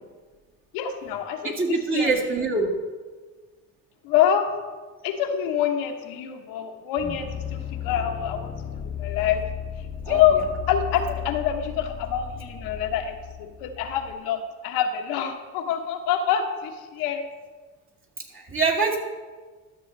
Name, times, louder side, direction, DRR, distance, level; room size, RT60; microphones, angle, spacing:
voice 1, 0.7-1.6 1.9-2.1 4.0-4.5 5.0-9.4 10.1-10.4 10.7-17.2, left 9 dB, 85° left, 4 dB, 1.1 m, -26 dB
voice 2, 1.4-2.8 10.0-10.2 18.3-19.0, right 4 dB, 35° right, -1 dB, 2.0 m, -24 dB
sound 1, 7.0-14.2, left 8 dB, 20° left, 0.8 m, -35 dB
13.0 x 7.0 x 3.2 m, 1.4 s
supercardioid pair, 85°, 35 cm